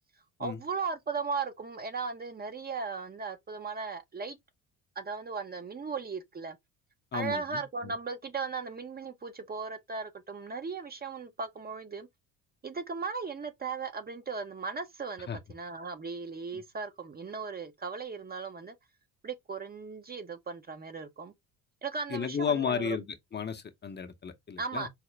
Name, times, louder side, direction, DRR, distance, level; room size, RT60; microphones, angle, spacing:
voice 1, 0.4-4.4 5.0-6.6 7.1-12.1 12.6-18.7 19.2-21.3 21.8-23.0 24.6-24.9, right 4 dB, 25° right, 0.7 m, -37 dB
voice 2, 7.1-7.9 15.3-15.4 16.5-16.6 22.1-23.1 23.3-24.9, left 7 dB, 30° left, 0.7 m, -33 dB
4.9 x 2.1 x 3.2 m
supercardioid pair, 90°, 36 cm